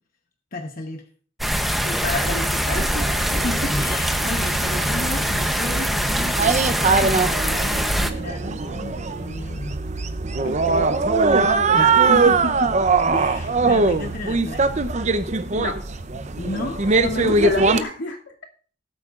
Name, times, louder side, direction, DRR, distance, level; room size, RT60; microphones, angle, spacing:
voice 1, 0.5-1.1 3.4-9.8 11.7-14.8 16.4-17.0, left 2 dB, 50° left, 3 dB, 1.0 m, -33 dB
sound 1, 1.4-8.1, equal, ahead, 0.8 m, -23 dB
voice 2, 1.8-3.0 3.3-3.4 10.4-12.1 15.6-15.8 17.0-18.2, left 1 dB, 80° left, 0 dB, 2.5 m, -30 dB
sound 2, 2.7-17.8, right 4 dB, 40° right, 0.7 m, -22 dB
19.0 x 8.3 x 2.5 m, 0.41 s
head